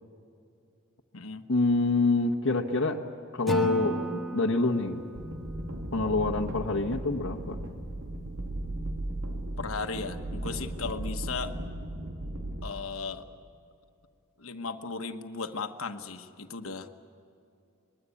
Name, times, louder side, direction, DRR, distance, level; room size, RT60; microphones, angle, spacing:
voice 1, 1.5-3.0 3.3-5.0 5.9-7.6, left 3 dB, 65° left, 1 dB, 1.3 m, -26 dB
Acoustic guitar / Strum, 3.5-6.6, right 1 dB, ahead, 1.8 m, -36 dB
sound 1, 5.1-12.6, right 1 dB, 90° right, 2.6 m, -36 dB
voice 2, 9.6-11.6 12.6-13.2 14.4-16.9, left 4 dB, 80° left, 7 dB, 1.3 m, -36 dB
24.5 x 21.5 x 8.4 m, 2.6 s
head